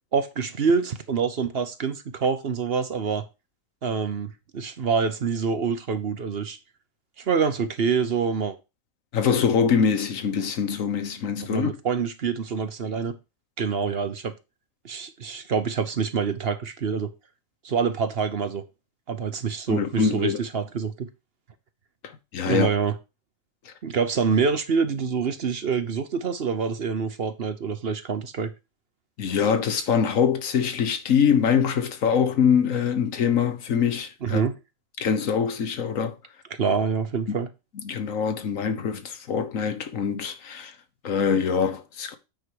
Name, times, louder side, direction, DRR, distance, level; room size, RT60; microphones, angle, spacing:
voice 1, 0.1-3.2 3.8-6.6 7.2-8.6 11.5-13.1 13.6-14.3 14.8-17.1 17.6-18.6 19.1-21.1 22.4-22.9 23.8-28.5 34.2-34.6 36.6-37.5, right 6 dB, 50° right, 1.0 m, -26 dB
voice 2, 9.1-11.7 19.7-20.4 22.0-22.7 23.6-23.7 29.2-34.4 35.0-36.2 37.3-37.4 37.7-40.7 41.0-42.2, left 7 dB, 80° left, 1.4 m, -24 dB
8.9 x 4.9 x 4.7 m
omnidirectional pair, 1.4 m